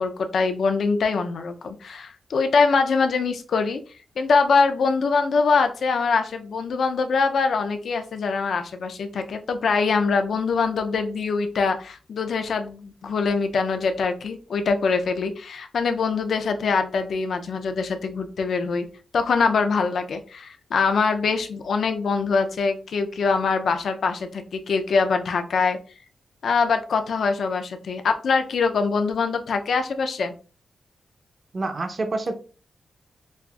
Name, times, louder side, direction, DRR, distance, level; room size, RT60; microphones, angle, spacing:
voice 1, 0.0-3.8 4.2-18.9 19.1-25.8 26.4-30.3, left 4 dB, 70° left, 7 dB, 0.5 m, -23 dB
voice 2, 31.5-32.4, right 2 dB, 40° right, 6 dB, 0.6 m, -27 dB
5.2 x 2.5 x 2.3 m, 0.37 s
wide cardioid pair, 120°, 0 cm